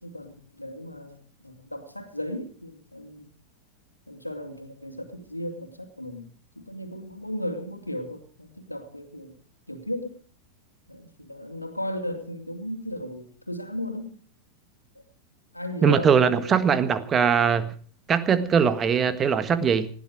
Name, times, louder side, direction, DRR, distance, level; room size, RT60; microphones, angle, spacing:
voice 1, 0.0-3.3 4.1-6.3 6.6-9.3 9.7-10.2 10.9-14.1 14.9-15.0 15.5-17.0, equal, 85° left, 6 dB, 2.8 m, -36 dB
voice 2, 15.8-17.7 18.1-19.9, right 7 dB, 25° right, 12 dB, 1.6 m, -21 dB
19.5 x 15.0 x 4.9 m, 0.43 s
figure-of-eight pair, 90°, 0 cm